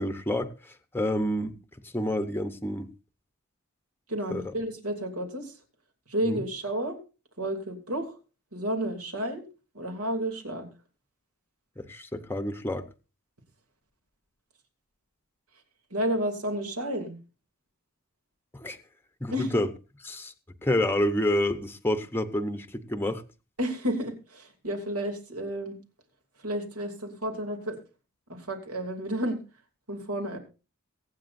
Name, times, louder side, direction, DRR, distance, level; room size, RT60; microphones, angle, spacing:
voice 1, 0.0-1.5 1.9-2.9 4.3-4.4 6.3-6.4 11.8-12.8 18.5-18.8 19.2-19.7 20.0-20.3 20.6-23.2, left 1 dB, 10° left, 8 dB, 0.8 m, -28 dB
voice 2, 4.1-5.5 6.1-7.0 7.4-8.2 8.5-9.5 9.7-10.7 15.9-17.1 19.3-19.6 23.6-25.7 26.4-27.8 28.3-29.4 29.9-30.4, right 1 dB, 80° right, 4 dB, 2.8 m, -31 dB
23.0 x 8.9 x 2.6 m, 0.32 s
head